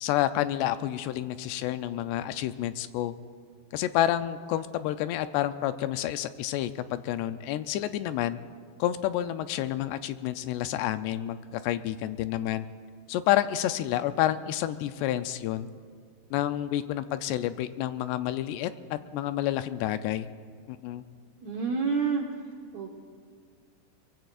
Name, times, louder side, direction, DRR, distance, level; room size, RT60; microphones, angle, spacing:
voice 1, 0.0-3.2 3.7-8.4 8.8-12.7 13.1-15.7 16.3-20.3 20.7-21.0, left 13 dB, 85° left, 11 dB, 2.6 m, -29 dB
voice 2, 21.4-22.3 22.7-23.0, right 5 dB, 75° right, 0 dB, 1.6 m, -28 dB
23.5 x 23.5 x 2.5 m, 2.2 s
omnidirectional pair, 4.9 m